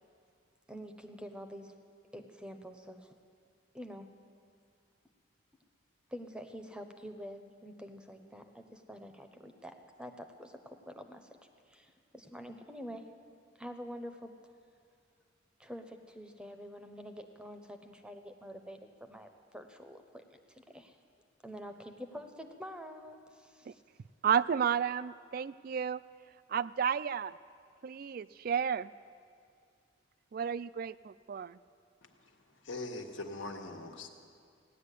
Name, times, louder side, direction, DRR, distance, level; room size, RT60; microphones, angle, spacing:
voice 1, 0.7-1.7 2.1-3.1 3.7-4.1 6.1-11.3 11.7-13.1 13.6-14.3 15.6-21.0 21.4-23.8, equal, 5° right, 6 dB, 0.7 m, -47 dB
voice 2, 24.2-26.0 26.5-27.4 27.8-28.9 30.3-31.6, right 7 dB, 50° right, 17 dB, 0.3 m, -32 dB
voice 3, 32.0-34.1, left 2 dB, 85° left, 3 dB, 1.5 m, -42 dB
16.5 x 10.5 x 8.3 m, 2.3 s
head